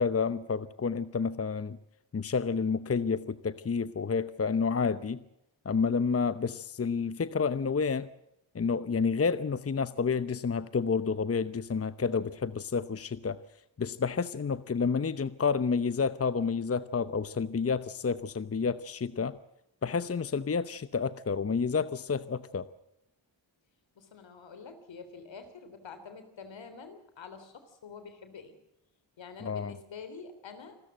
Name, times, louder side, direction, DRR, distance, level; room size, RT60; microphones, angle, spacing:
voice 1, 0.0-1.8 2.1-5.2 5.6-8.1 8.5-13.4 13.8-19.4 19.8-22.7 29.4-29.7, left 5 dB, 30° left, 14 dB, 0.9 m, -29 dB
voice 2, 24.0-28.6 29.2-30.8, left 5 dB, 75° left, 10 dB, 3.6 m, -47 dB
27.5 x 13.5 x 7.7 m, 0.83 s
cardioid pair, 55°, 45 cm